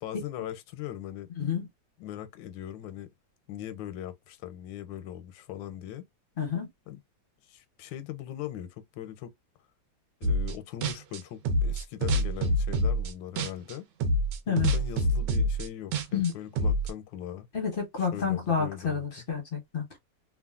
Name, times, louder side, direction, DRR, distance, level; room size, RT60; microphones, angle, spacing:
voice 1, 0.0-1.3 2.0-3.1 3.5-6.1 6.9-7.0 7.5-9.3 10.2-13.9 14.5-17.5 18.1-19.2, left 11 dB, 90° left, 1.3 m, -40 dB
voice 2, 1.4-1.7 6.4-6.7 14.5-14.7 16.1-16.3 17.5-20.0, left 6 dB, 45° left, 0.7 m, -29 dB
sound 1, 10.2-10.6 10.8-13.7 14.0-16.9, equal, 75° right, 1.2 m, -26 dB
2.9 x 2.4 x 2.3 m
omnidirectional pair, 2.0 m